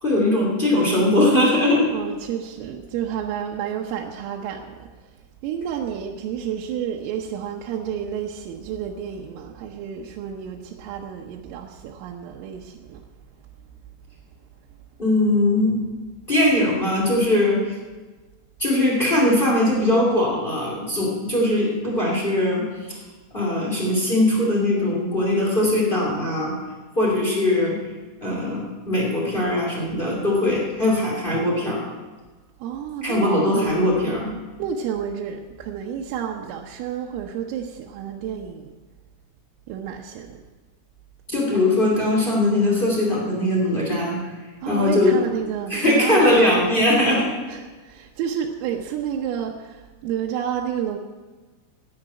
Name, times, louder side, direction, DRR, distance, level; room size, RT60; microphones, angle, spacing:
voice 1, 0.0-1.9 15.0-15.8 16.3-17.7 18.6-22.7 23.3-26.5 26.9-27.8 28.2-31.9 33.0-34.3 41.3-44.2 44.6-45.1 45.7-47.3, left 1 dB, 25° left, -3 dB, 1.1 m, -20 dB
voice 2, 1.9-5.2 5.4-13.0 32.6-33.9 34.6-38.7 39.7-40.4 41.5-41.7 44.6-46.7 47.5-51.0, right 8 dB, 85° right, 0 dB, 3.5 m, -30 dB
10.5 x 10.0 x 8.9 m, 1.3 s
omnidirectional pair, 5.9 m